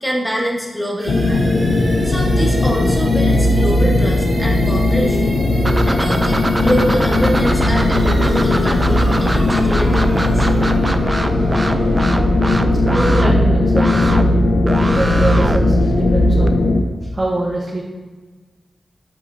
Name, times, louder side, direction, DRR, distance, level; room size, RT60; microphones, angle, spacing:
voice 1, 0.0-1.5 2.0-5.3 5.9-10.6, equal, 5° left, -1 dB, 1.4 m, -25 dB
sound 1, 1.0-14.7, right 1 dB, 60° right, 1.8 m, -35 dB
sound 2, 1.1-16.8, left 2 dB, 80° left, 0.7 m, -16 dB
sound 3, 5.6-16.5, right 1 dB, 20° right, 0.5 m, -23 dB
voice 2, 12.7-14.3 14.7-16.6 17.0-17.8, right 1 dB, 35° right, -4 dB, 1.2 m, -24 dB
8.0 x 4.8 x 2.8 m, 1.3 s
cardioid pair, 65°, 0 cm